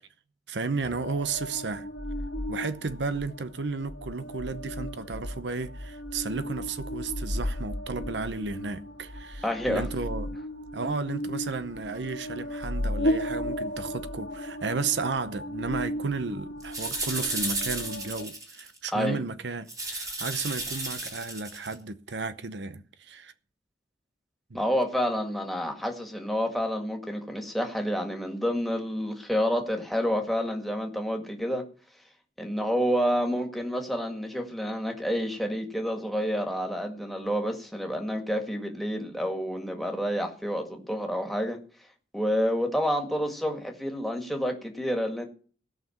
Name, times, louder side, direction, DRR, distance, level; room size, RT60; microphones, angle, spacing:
voice 1, 0.5-1.9 2.5-10.4 10.7-23.3 24.5-24.6, right 4 dB, 90° right, 0.8 m, -33 dB
sound 1, 0.8-18.2, equal, 80° left, 1.9 m, -35 dB
voice 2, 9.4-9.8 18.9-19.2 24.5-31.6 32.4-41.6 42.1-45.3, equal, ahead, 1.9 m, -29 dB
sound 2, 16.6-18.8 19.7-21.7, right 2 dB, 20° right, 1.9 m, -33 dB
17.0 x 5.8 x 7.2 m
head